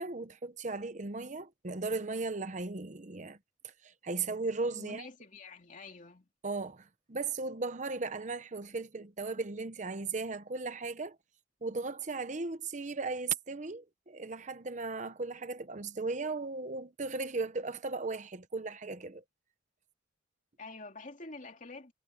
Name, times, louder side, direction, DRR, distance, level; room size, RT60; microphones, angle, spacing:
voice 1, 0.0-3.4 3.6-5.0 6.4-11.2 11.6-19.2, right 3 dB, 40° right, 0.8 m, -36 dB
voice 2, 4.7-6.3 20.6-21.9, left 3 dB, 40° left, 2.8 m, -47 dB
head